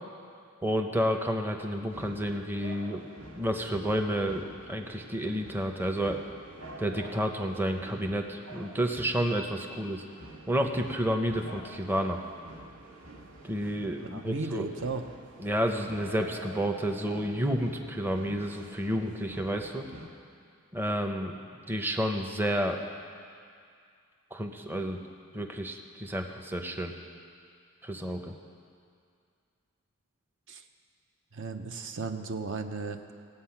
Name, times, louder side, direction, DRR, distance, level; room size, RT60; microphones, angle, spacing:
voice 1, 0.6-3.1 3.4-6.2 6.8-10.0 10.5-12.2 13.4-14.7 15.4-19.8 20.7-21.4 21.7-22.8 24.3-25.0 25.3-26.9 27.8-28.3, equal, 10° right, 3 dB, 0.6 m, -30 dB
sound 1, 1.9-20.1, right 1 dB, 75° right, 1.7 m, -48 dB
voice 2, 13.8-15.1 30.5-30.6 31.3-33.0, right 3 dB, 60° right, 6 dB, 0.7 m, -35 dB
19.0 x 8.0 x 5.8 m, 2.3 s
head